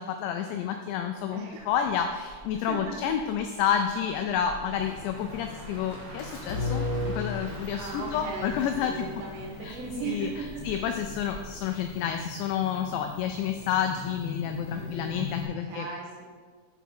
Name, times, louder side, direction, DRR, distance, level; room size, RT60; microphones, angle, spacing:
voice 1, 0.0-9.1 9.6-9.8 10.1-15.9, left 8 dB, 90° left, 5 dB, 2.5 m, -30 dB
voice 2, 1.3-1.7 2.5-3.1 4.6-4.8 7.8-10.9 14.7-15.1 15.4-16.3, right 4 dB, 75° right, 0 dB, 3.2 m, -38 dB
sound 1, 1.5-12.6 12.9-13.2, equal, 55° right, 2.3 m, -46 dB
sound 2, 4.8-15.4, left 3 dB, 75° left, 1.8 m, -38 dB
9.0 x 6.0 x 4.6 m, 1.5 s
omnidirectional pair, 5.6 m